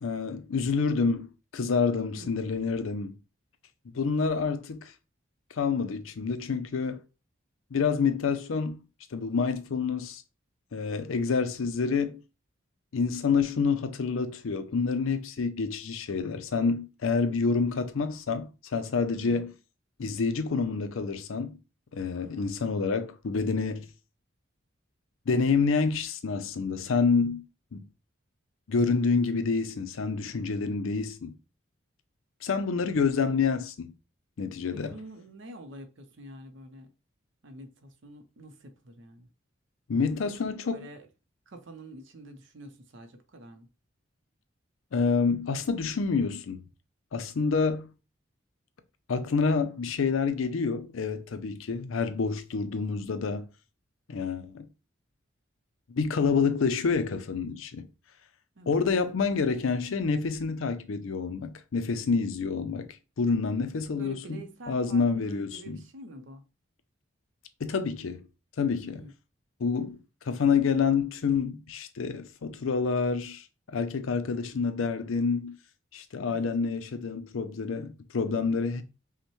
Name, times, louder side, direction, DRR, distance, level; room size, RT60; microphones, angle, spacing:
voice 1, 0.0-3.2 3.9-4.9 5.5-7.0 7.7-8.8 9.1-10.2 10.7-12.2 12.9-19.5 20.0-21.6 21.9-23.9 25.3-27.4 27.7-27.8 28.7-31.3 32.4-33.9 34.4-34.9 39.9-40.9 44.9-46.6 47.1-47.9 49.1-53.4 54.1-54.7 55.9-57.9 58.7-64.4 64.7-65.8 67.6-68.2 68.6-69.0 69.6-70.0 70.3-73.4 73.7-75.5 75.9-78.8, left 5 dB, 80° left, 0.5 m, -28 dB
voice 2, 22.2-22.5 33.3-33.4 34.7-36.9 37.4-39.3 40.2-41.1 41.5-43.7 58.6-58.8 64.0-66.4 68.9-69.1 76.3-76.5, right 1 dB, 65° right, 0.7 m, -47 dB
5.5 x 2.1 x 3.1 m
head